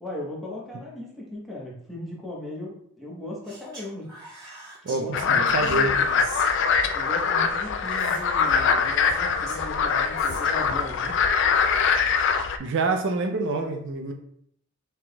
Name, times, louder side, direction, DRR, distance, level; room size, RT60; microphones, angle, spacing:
voice 1, 0.0-4.1 4.9-6.2 6.9-11.2, left 1 dB, ahead, -4 dB, 1.0 m, -38 dB
Speech, 3.4-5.0 5.6-7.0 7.8-10.7, right 2 dB, 20° right, 1.7 m, -44 dB
voice 2, 4.8-6.0 12.6-14.1, right 3 dB, 60° right, 4 dB, 0.5 m, -26 dB
sound 1, 5.1-12.6, left 6 dB, 60° left, 0.4 m, -23 dB
6.0 x 3.4 x 2.3 m, 0.68 s
head